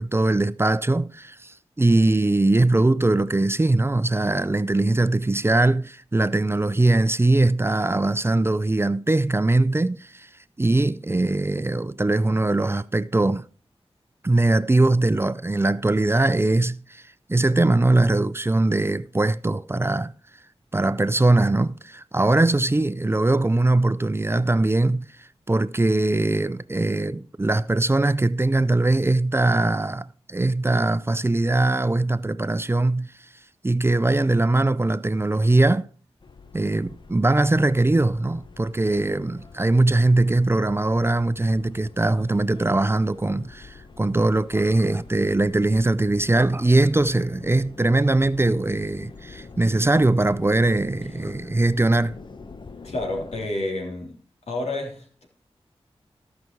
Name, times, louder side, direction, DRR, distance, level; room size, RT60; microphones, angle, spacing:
voice 1, 0.0-10.3 10.6-13.5 14.2-17.0 17.3-20.1 20.7-25.1 25.5-33.1 33.6-35.9 36.5-52.1, right 2 dB, 25° right, 0.5 m, -21 dB
sound 1, 36.2-53.5, left 4 dB, 45° left, 0.9 m, -45 dB
voice 2, 52.8-54.2 54.5-55.2, left 2 dB, 85° left, 3.3 m, -29 dB
15.5 x 6.0 x 4.6 m
cardioid pair, 50°, 11 cm